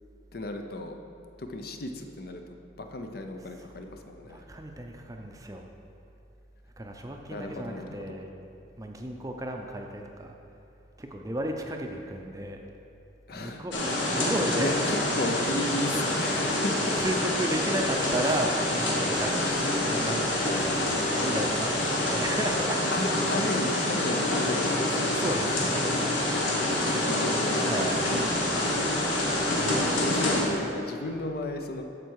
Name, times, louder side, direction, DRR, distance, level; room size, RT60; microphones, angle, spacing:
voice 1, 0.3-1.0 1.4-4.5 7.3-8.2 13.3-13.7 14.6-16.9 22.9-25.2 26.7-27.9 29.6-31.8, left 1 dB, 50° left, 5 dB, 0.6 m, -34 dB
voice 2, 3.4-3.7 4.3-5.7 6.8-8.3 8.8-10.3 11.0-12.6 13.3-15.7 16.1-20.3 20.6-23.0 23.4-23.5 25.1-25.8 27.6-28.0 29.4-29.8, right 1 dB, 20° right, 3 dB, 0.5 m, -34 dB
sound 1, 13.7-30.4, left 1 dB, 85° left, 1.8 m, -27 dB
13.5 x 4.6 x 4.7 m, 2.7 s
head